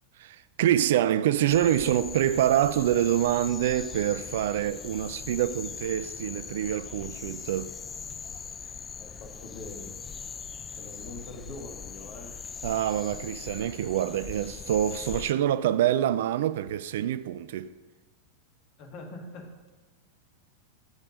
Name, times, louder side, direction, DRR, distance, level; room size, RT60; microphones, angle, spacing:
voice 1, 0.2-7.7 12.6-17.7, right 11 dB, 55° right, 0.4 m, -26 dB
sound 1, 1.5-15.3, left 6 dB, 20° left, 0.3 m, -41 dB
voice 2, 9.0-9.9 10.8-12.4 12.7-12.8 18.8-19.7, left 2 dB, 40° left, 2.0 m, -43 dB
14.0 x 5.4 x 6.5 m
figure-of-eight pair, 90°, 0 cm